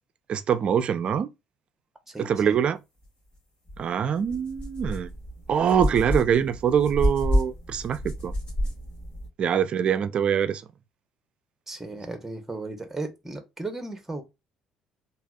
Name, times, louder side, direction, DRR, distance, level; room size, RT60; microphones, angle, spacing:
voice 1, 0.3-1.3 2.2-2.8 3.8-5.1 5.5-8.3 9.4-10.6, right 8 dB, 50° right, 0.4 m, -24 dB
voice 2, 2.1-2.6 6.0-6.1 11.7-14.2, right 2 dB, 10° right, 0.9 m, -36 dB
sound 1, 3.7-3.8 4.2-9.3, equal, 50° left, 1.7 m, -29 dB
3.2 x 2.4 x 2.3 m
hypercardioid pair, 55°, 2 cm